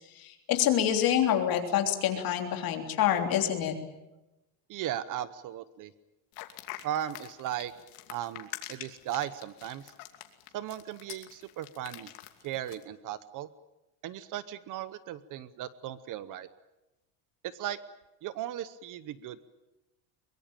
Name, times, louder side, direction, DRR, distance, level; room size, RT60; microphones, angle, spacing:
voice 1, 0.2-3.7, left 10 dB, 45° left, 4 dB, 3.4 m, -27 dB
voice 2, 4.7-5.9 6.8-7.7 8.1-9.9 10.5-12.1 12.4-13.5 14.0-16.5 17.4-17.8 18.2-19.5, right 12 dB, 40° right, 15 dB, 0.9 m, -37 dB
sound 1, 6.3-12.8, left 16 dB, 85° left, 2.7 m, -45 dB
23.0 x 22.5 x 8.9 m, 1.0 s
cardioid pair, 160°, 49 cm